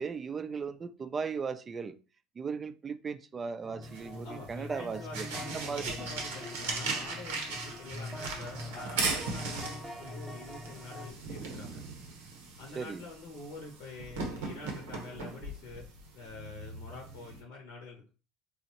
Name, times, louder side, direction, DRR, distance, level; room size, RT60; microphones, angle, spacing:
voice 1, 0.0-2.0 2.4-5.3 5.5-6.0 12.8-13.0, right 5 dB, 30° right, 0.4 m, -37 dB
sound 1, 3.6-11.1, left 1 dB, 10° right, 0.8 m, -44 dB
sound 2, 3.8-17.4, right 3 dB, 85° right, 0.9 m, -39 dB
voice 2, 4.2-11.8 12.6-15.9 16.1-18.1, left 3 dB, 75° left, 0.7 m, -46 dB
4.2 x 2.0 x 2.8 m
hypercardioid pair, 75°, 0 cm